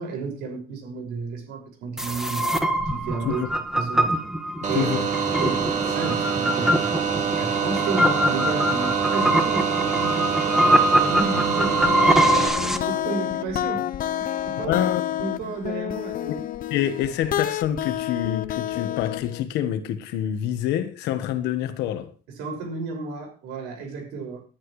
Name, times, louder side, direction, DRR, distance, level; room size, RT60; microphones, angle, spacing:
voice 1, 0.0-2.6 2.9-3.4 3.7-4.3 4.7-4.9 5.4-11.9 12.5-13.9 14.2-14.8 15.2-16.4 22.4-24.4, right 4 dB, 90° right, 6.0 m, -32 dB
sound 1, 2.0-12.8, right 1 dB, ahead, 1.7 m, -23 dB
sound 2, 4.6-12.5, right 6 dB, 45° right, 2.7 m, -25 dB
voice 2, 4.7-5.1 14.6-15.0 16.3-16.4 16.7-22.1, left 11 dB, 85° left, 1.6 m, -26 dB
sound 3, 11.9-19.5, left 12 dB, 55° left, 0.8 m, -29 dB
19.5 x 10.5 x 3.3 m
cardioid pair, 110°, 17 cm